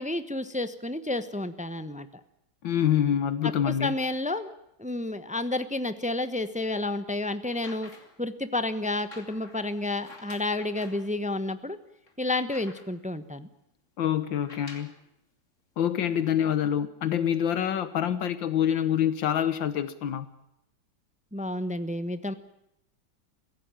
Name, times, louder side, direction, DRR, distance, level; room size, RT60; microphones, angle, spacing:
voice 1, 0.0-2.1 3.4-4.5 4.8-7.9 8.2-11.8 12.2-13.5 21.3-22.3, left 2 dB, 5° right, 11 dB, 0.7 m, -30 dB
voice 2, 2.6-3.9 14.0-14.9 15.8-20.3, left 9 dB, 80° left, 13 dB, 1.8 m, -26 dB
Paper Flap, 7.4-8.2 8.9-11.1 11.6-11.7 12.1-13.1 14.3-15.0 16.0-16.1, left 3 dB, 40° left, 3.2 m, -50 dB
23.5 x 16.5 x 9.0 m, 0.83 s
omnidirectional pair, 2.0 m